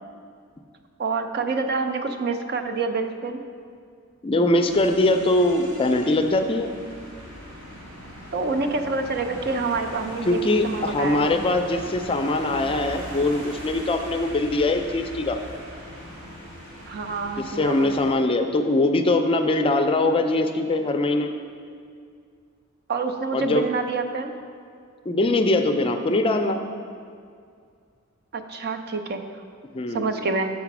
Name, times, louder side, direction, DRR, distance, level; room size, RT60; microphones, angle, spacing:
voice 1, 1.0-3.4 8.3-11.3 16.9-17.9 22.9-24.3 28.3-29.2 29.9-30.5, right 4 dB, 50° right, 6 dB, 0.5 m, -27 dB
voice 2, 4.2-6.7 10.3-15.4 17.4-21.3 23.3-23.7 25.1-26.6 29.7-30.1, left 2 dB, 25° left, 6 dB, 0.4 m, -22 dB
sound 1, 4.7-18.1, equal, 75° right, 2.2 m, -40 dB
7.4 x 5.0 x 6.0 m, 2.2 s
head